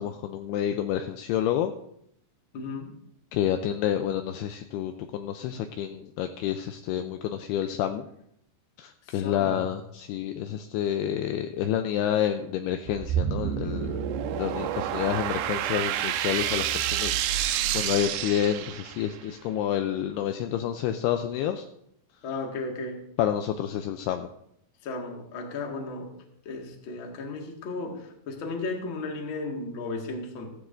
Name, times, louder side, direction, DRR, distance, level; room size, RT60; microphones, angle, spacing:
voice 1, 0.0-1.7 3.3-8.1 8.8-14.0 14.4-21.6 23.2-24.3, left 10 dB, 85° left, 7 dB, 2.3 m, -29 dB
voice 2, 2.5-2.9 9.0-9.7 22.2-23.0 24.8-26.1 26.4-30.5, left 3 dB, 50° left, 1 dB, 1.5 m, -35 dB
sound 1, 12.9-19.2, right 10 dB, 80° right, 2.6 m, -29 dB
15.5 x 15.0 x 2.6 m, 0.74 s
omnidirectional pair, 5.2 m